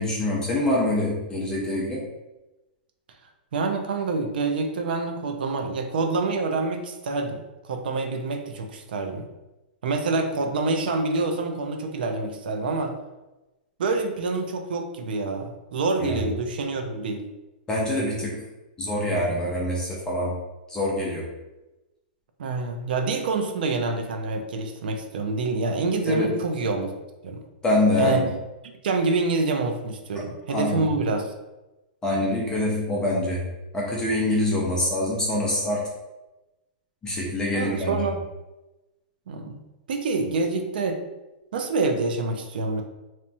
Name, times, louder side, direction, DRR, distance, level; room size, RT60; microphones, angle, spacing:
voice 1, 0.0-2.0 16.0-16.2 17.7-18.4 18.8-20.3 20.7-21.3 26.1-26.3 27.6-28.3 30.5-30.9 32.0-33.5 33.7-35.8 37.0-38.0, left 1 dB, 15° left, -3 dB, 0.4 m, -25 dB
voice 2, 3.5-9.3 9.8-12.9 13.8-17.3 22.4-26.9 27.2-27.4 28.0-28.2 28.8-31.3 37.5-38.2 39.3-39.6 39.9-41.0 41.5-42.8, right 3 dB, 75° right, 5 dB, 0.4 m, -26 dB
2.8 x 2.1 x 2.6 m, 1.0 s
hypercardioid pair, 145°, 5 cm